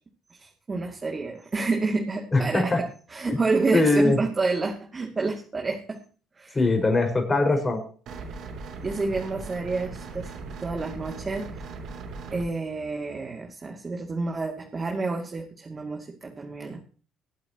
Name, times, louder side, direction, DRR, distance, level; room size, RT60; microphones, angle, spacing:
voice 1, 0.3-6.0 6.4-6.6 8.8-10.3 10.6-11.7 12.3-16.8, right 3 dB, 30° right, 1 dB, 2.6 m, -29 dB
voice 2, 2.3-2.8 3.3-3.4 3.7-4.2 6.5-7.8, left 2 dB, 25° left, 5 dB, 5.5 m, -21 dB
sound 1, 8.1-12.5, right 4 dB, 65° right, 3.2 m, -38 dB
23.0 x 8.6 x 3.0 m, 0.40 s
hypercardioid pair, 60°, 0 cm